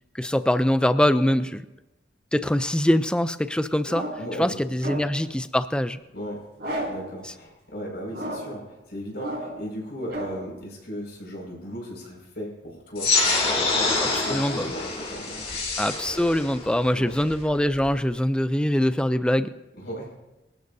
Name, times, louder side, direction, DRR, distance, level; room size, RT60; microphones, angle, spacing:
voice 1, 0.1-1.6 2.3-4.1 4.4-6.0 7.2-7.3 14.1-14.7 15.8-19.5, left 1 dB, 5° left, 12 dB, 0.4 m, -23 dB
sound 1, 3.8-4.4 4.8-5.3 6.6-7.1 8.1-8.6 9.1-9.7 10.1-10.4, right 1 dB, 65° right, 6.1 m, -33 dB
voice 2, 4.2-5.0 6.1-6.4 6.9-15.4 17.0-17.1 19.8-20.1, equal, 60° left, -2 dB, 5.6 m, -36 dB
sound 2, 13.0-18.0, left 3 dB, 30° left, 2.6 m, -26 dB
24.0 x 13.0 x 2.7 m, 1.0 s
head